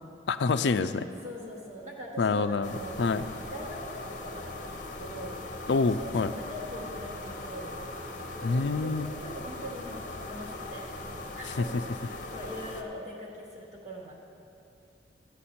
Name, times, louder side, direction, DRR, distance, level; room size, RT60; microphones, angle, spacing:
voice 1, 0.3-1.0 2.2-2.7 3.0-3.3 5.7-6.3 8.4-9.1, left 4 dB, 75° left, 11 dB, 0.4 m, -26 dB
voice 2, 1.2-2.9 3.5-5.3 5.9-7.7 8.3-10.9 11.3-14.1, equal, 40° right, -5 dB, 1.1 m, -42 dB
sound 1, 2.6-12.8, left 2 dB, 45° left, 0.9 m, -40 dB
14.0 x 8.2 x 4.3 m, 2.7 s
head